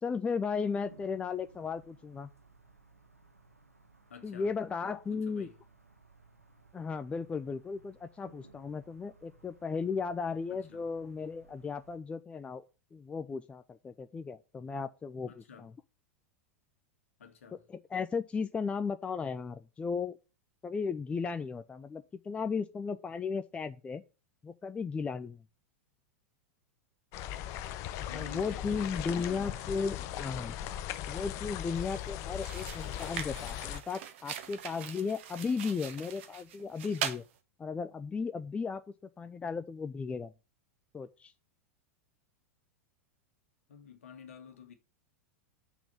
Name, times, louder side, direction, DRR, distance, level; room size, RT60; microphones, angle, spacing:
voice 1, 0.0-2.3 4.2-5.5 6.7-12.6 12.9-15.7 17.5-20.2 20.6-24.0 24.4-25.4 28.1-30.6 31.1-37.2 37.6-38.8 39.2-40.3 40.9-41.3, left 5 dB, 15° left, 0.5 m, -35 dB
sound 1, 0.5-12.0, right 3 dB, 90° right, 1.2 m, -60 dB
voice 2, 4.1-4.5 5.1-5.6 10.5-10.8 15.3-15.7 17.2-17.6 28.1-29.6 43.7-44.7, left 7 dB, 70° left, 1.9 m, -50 dB
sound 2, 27.1-33.8, left 11 dB, 40° left, 0.8 m, -38 dB
sound 3, 31.7-31.9 32.3-37.3, right 9 dB, 55° right, 1.3 m, -41 dB
6.3 x 5.8 x 7.0 m
figure-of-eight pair, 90°, 8 cm